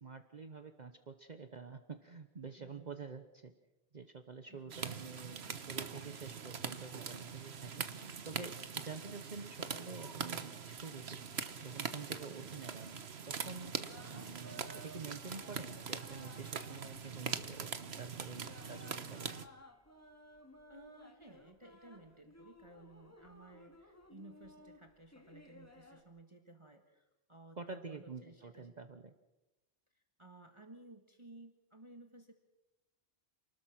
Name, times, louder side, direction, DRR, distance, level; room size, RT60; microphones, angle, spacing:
voice 1, 0.0-3.5 3.9-7.8 8.2-11.2 11.6-13.7 14.1-19.3 27.6-29.1, right 4 dB, 45° right, 8 dB, 1.1 m, -48 dB
voice 2, 2.6-3.1 4.5-5.0 20.7-28.7 29.9-32.3, right 2 dB, 25° right, 4 dB, 1.6 m, -57 dB
sound 1, 4.7-19.5, right 6 dB, 70° right, 1.4 m, -43 dB
sound 2, 13.5-26.0, equal, 15° left, 2.2 m, -58 dB
28.5 x 19.5 x 6.0 m, 1.0 s
omnidirectional pair, 1.1 m